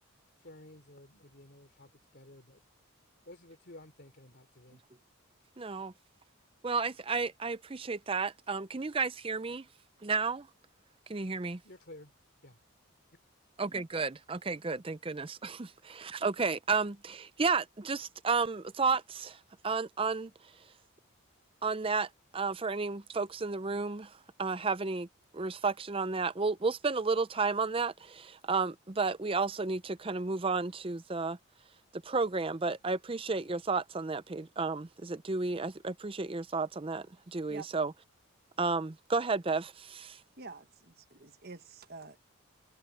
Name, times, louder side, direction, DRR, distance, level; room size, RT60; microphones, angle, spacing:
voice 1, 0.4-2.6 3.2-4.8 11.6-12.1 12.4-12.6, left 1 dB, 50° left, 3.2 m, -53 dB
voice 2, 5.6-5.9 6.6-9.7 10.0-10.5 11.1-11.6 13.6-19.4 19.6-20.3 21.6-25.1 25.3-31.4 31.9-37.9 38.6-40.2, right 4 dB, 25° right, 0.5 m, -32 dB
voice 3, 40.4-42.2, right 4 dB, 45° right, 1.4 m, -48 dB
head